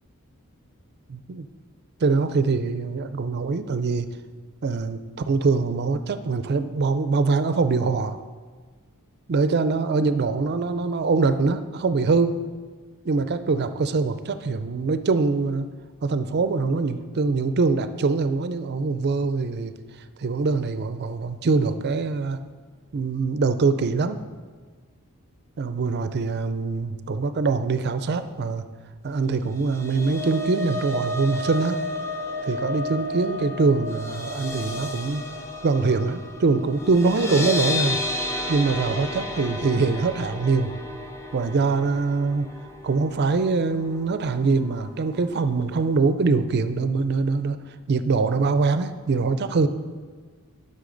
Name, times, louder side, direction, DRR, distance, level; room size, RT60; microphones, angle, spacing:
voice 1, 1.1-1.5 2.0-4.1 4.6-5.0 5.3-8.2 9.3-12.4 13.0-15.7 16.0-19.7 20.2-22.4 22.9-24.2 25.6-28.6 29.0-31.9 32.4-35.2 35.6-38.0 38.5-40.7 41.3-42.5 42.8-47.6 47.9-49.7, right 4 dB, 50° right, 11 dB, 0.4 m, -23 dB
sound 1, 29.5-43.7 44.1-44.3 44.6-44.7, left 1 dB, 10° left, 0.6 m, -32 dB
11.5 x 5.5 x 3.9 m, 1.5 s
head